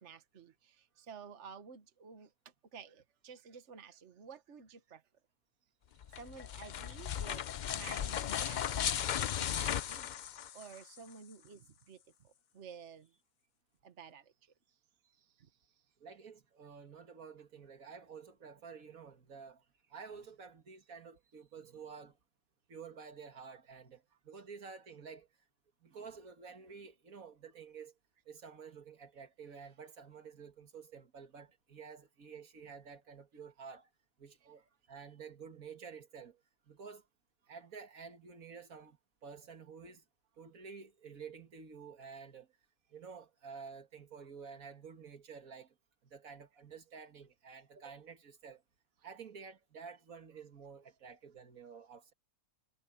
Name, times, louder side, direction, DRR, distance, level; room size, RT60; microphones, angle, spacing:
voice 1, 0.0-2.3 2.7-5.0 6.1-10.1 10.5-13.1 13.8-14.3 15.2-15.5, right 6 dB, 60° right, 1.6 m, -52 dB
sound 1, 6.0-11.0, left 10 dB, 90° left, 0.4 m, -36 dB
voice 2, 16.0-22.2 22.7-25.3 25.8-27.9 28.3-33.9 34.2-36.4 36.7-37.0 37.5-40.0 40.4-42.5 42.9-45.7 46.0-48.6 49.0-52.1, right 6 dB, 85° right, 2.2 m, -51 dB
omnidirectional pair, 1.4 m